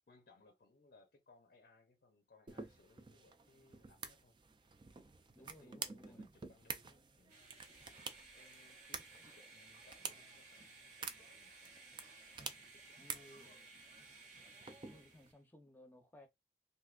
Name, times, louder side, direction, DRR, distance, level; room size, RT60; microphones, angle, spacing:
voice 1, 0.1-4.3 5.4-7.7 8.4-11.7 12.1-12.2 12.5-13.7, left 3 dB, 55° left, 0.5 m, -67 dB
sound 1, 2.5-15.3, right 5 dB, 25° right, 0.4 m, -50 dB
voice 2, 5.3-6.2 13.0-13.8 14.9-16.3, left 1 dB, 10° left, 0.7 m, -60 dB
sound 2, 7.3-15.4, right 3 dB, 45° right, 0.8 m, -58 dB
3.6 x 2.5 x 2.4 m
head